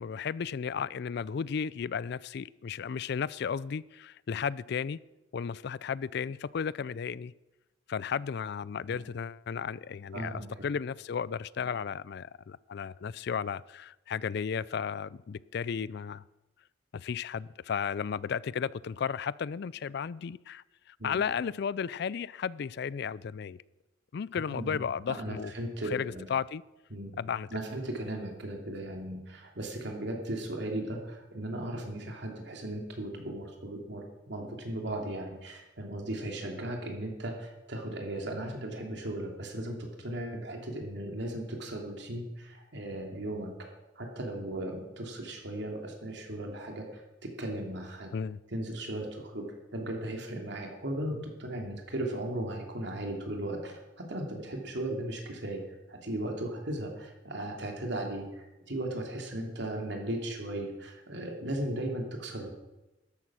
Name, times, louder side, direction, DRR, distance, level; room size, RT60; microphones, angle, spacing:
voice 1, 0.0-5.0 5.3-7.3 7.9-16.2 16.9-23.6 24.1-25.5 25.8-26.6 27.2-27.5 48.1-48.4, left 6 dB, 60° left, 0.4 m, -34 dB
voice 2, 10.1-10.5 21.0-21.2 24.5-26.2 26.9-27.2 27.5-43.5 44.0-47.0 47.4-48.1 48.5-49.4 49.7-55.6 55.9-62.5, right 1 dB, 65° right, 2.9 m, -37 dB
13.0 x 11.0 x 6.2 m
head